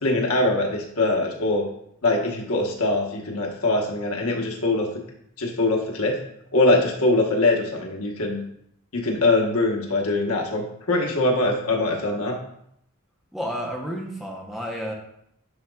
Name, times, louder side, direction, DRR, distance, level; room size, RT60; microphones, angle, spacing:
voice 1, 0.0-1.6 2.0-4.9 5.4-6.2 6.5-8.4 8.9-12.4, left 2 dB, 85° left, 0 dB, 1.2 m, -22 dB
voice 2, 13.3-14.9, equal, ahead, -2 dB, 0.8 m, -31 dB
10.5 x 4.0 x 2.4 m, 0.73 s
head